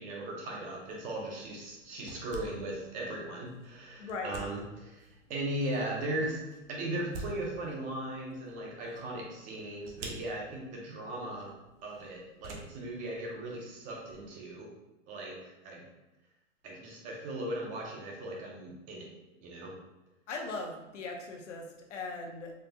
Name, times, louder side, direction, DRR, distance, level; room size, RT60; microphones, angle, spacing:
voice 1, 0.0-6.4 6.7-11.5 11.8-14.7 15.1-15.8 16.6-19.1 19.4-19.7, right 1 dB, 20° right, -1 dB, 0.5 m, -38 dB
sound 1, 0.7-14.3, right 2 dB, 70° right, 0.9 m, -50 dB
voice 2, 4.0-4.4 20.3-22.5, left 3 dB, 75° left, 1 dB, 0.9 m, -39 dB
4.1 x 2.2 x 2.7 m, 1.0 s
hypercardioid pair, 130°, 37 cm